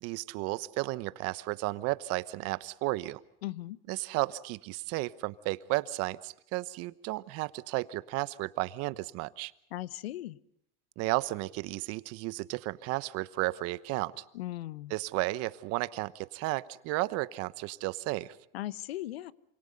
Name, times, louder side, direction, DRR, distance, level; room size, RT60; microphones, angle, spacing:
voice 1, 0.0-3.2 3.9-9.5 11.0-14.2 14.9-18.4, right 20 dB, 55° right, 16 dB, 1.0 m, -33 dB
voice 2, 3.4-3.8 9.7-10.4 14.3-14.9 18.5-19.3, left 15 dB, 85° left, 19 dB, 0.9 m, -38 dB
27.5 x 26.5 x 5.3 m, 0.75 s
supercardioid pair, 110°, 30 cm